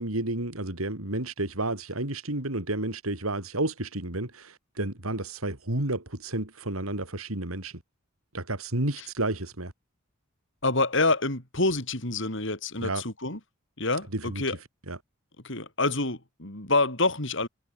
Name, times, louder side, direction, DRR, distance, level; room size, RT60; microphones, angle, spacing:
voice 1, 0.0-7.7 8.3-9.7 12.8-13.0 14.1-14.4 14.9-15.0, right 2 dB, 90° right, 4.2 m, -31 dB
voice 2, 10.6-13.4 13.8-14.6 15.4-17.5, left 2 dB, 60° left, 5.1 m, -27 dB
head